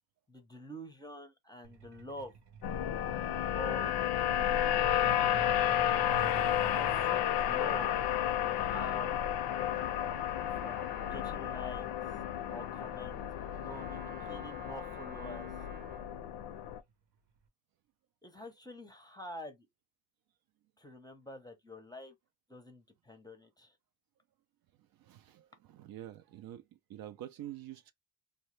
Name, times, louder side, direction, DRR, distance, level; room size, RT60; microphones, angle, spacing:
voice 1, 0.3-2.3 3.5-4.6 5.4-6.2 6.7-7.9 8.3-9.2 10.5-11.9 12.5-13.2 13.6-15.5 18.2-19.7 20.8-22.2 22.5-23.8, left 1 dB, 10° left, 0.6 m, -47 dB
Truck, 1.6-13.9 15.2-15.3 15.7-15.9 16.3-16.6 16.9-17.0 17.5-17.6, right 5 dB, 80° right, 0.9 m, -50 dB
sound 1, 2.6-16.8, left 11 dB, 70° left, 0.5 m, -32 dB
Trumpet, 9.3-16.2, right 1 dB, 20° right, 0.8 m, -53 dB
voice 2, 13.5-13.9 24.9-27.9, right 12 dB, 60° right, 0.5 m, -48 dB
2.7 x 2.2 x 3.1 m
cardioid pair, 115°, 41 cm